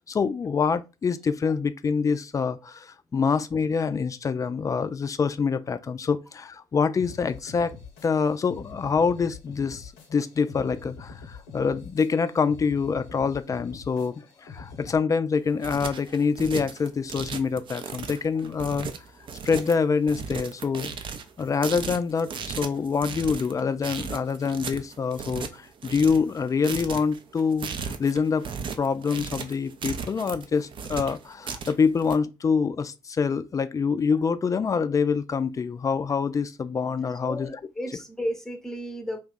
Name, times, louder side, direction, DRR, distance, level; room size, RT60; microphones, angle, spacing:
voice 1, 0.0-7.8 8.0-18.9 19.4-20.9 21.4-28.5 28.8-37.5, left 5 dB, 25° left, 0.3 m, -26 dB
sound 1, 7.0-15.0, left 4 dB, 70° left, 0.6 m, -44 dB
sound 2, 15.4-32.2, right 6 dB, 45° right, 0.5 m, -36 dB
voice 2, 37.2-39.2, equal, 5° left, 0.7 m, -33 dB
2.7 x 2.3 x 3.6 m
figure-of-eight pair, 40°, 12 cm